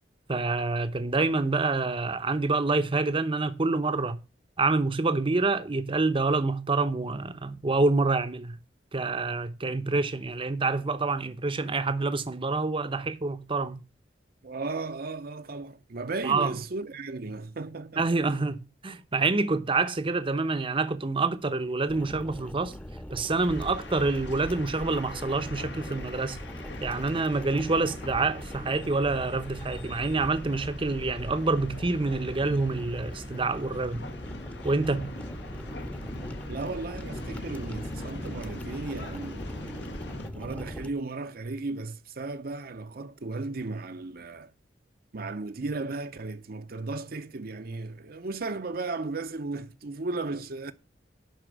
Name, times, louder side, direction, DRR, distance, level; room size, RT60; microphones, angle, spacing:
voice 1, 0.3-4.2 4.6-8.6 8.9-13.8 16.2-16.6 18.0-18.6 18.8-22.7 23.1-26.4 26.8-34.0 34.6-35.1, right 3 dB, 30° right, 0.8 m, -27 dB
voice 2, 14.4-18.4 36.5-39.9 40.3-44.5 45.1-50.7, right 3 dB, 55° right, 0.8 m, -35 dB
sound 1, 21.9-40.9, equal, 10° left, 0.9 m, -41 dB
sound 2, 23.4-40.3, left 1 dB, 70° left, 1.5 m, -42 dB
11.0 x 4.4 x 8.0 m
head